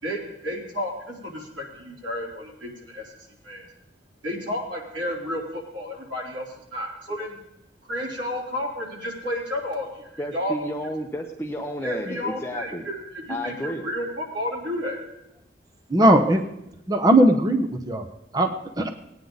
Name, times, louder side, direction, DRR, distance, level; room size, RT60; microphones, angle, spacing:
voice 1, 0.0-3.1 3.4-3.7 4.2-7.4 7.9-10.5 11.8-15.0, left 1 dB, 90° right, -3 dB, 3.7 m, -31 dB
voice 2, 10.2-12.8 13.3-13.9, equal, 15° left, 1 dB, 0.7 m, -32 dB
voice 3, 15.9-16.4 16.9-18.0 18.3-18.9, right 1 dB, 20° right, 5 dB, 0.8 m, -19 dB
18.0 x 9.3 x 4.0 m, 0.85 s
head